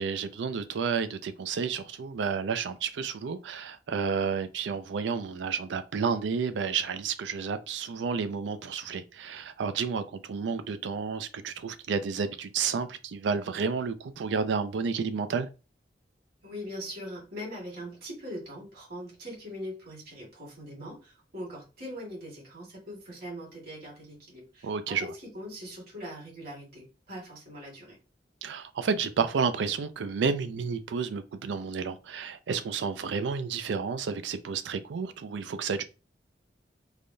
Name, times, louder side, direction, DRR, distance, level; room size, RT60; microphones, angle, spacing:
voice 1, 0.0-15.5 24.6-25.1 28.4-35.8, right 5 dB, 90° right, 0.4 m, -31 dB
voice 2, 16.4-28.0, equal, 60° right, 1.7 m, -41 dB
3.4 x 2.2 x 2.6 m
head